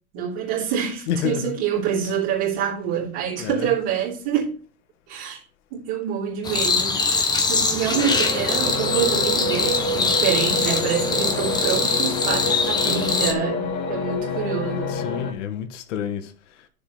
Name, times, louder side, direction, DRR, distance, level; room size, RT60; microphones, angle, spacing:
voice 1, 0.1-4.5 5.1-5.4 5.7-15.0, right 8 dB, 40° right, 3.1 m, -26 dB
voice 2, 1.1-1.6 2.0-2.1 3.3-3.8 6.9-7.0 14.9-16.3, left 8 dB, 55° left, 1.8 m, -29 dB
sound 1, 6.4-13.3, left 4 dB, 10° left, 1.2 m, -23 dB
sound 2, 7.9-15.3, left 2 dB, 25° left, 1.6 m, -28 dB
9.6 x 7.1 x 5.6 m
hypercardioid pair, 150°, 43 cm